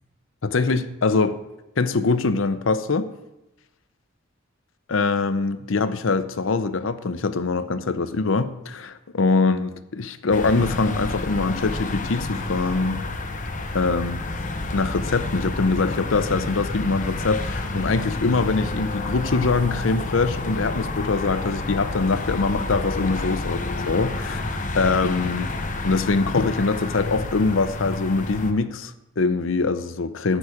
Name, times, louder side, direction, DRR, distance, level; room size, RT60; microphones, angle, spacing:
voice 1, 0.4-1.4 1.8-3.1 4.9-13.0 13.7-14.2 14.7-25.5 25.8-30.4, left 3 dB, 80° left, 0.7 m, -23 dB
sound 1, 10.3-28.5, left 2 dB, 40° left, 0.9 m, -29 dB
11.0 x 8.4 x 5.0 m
head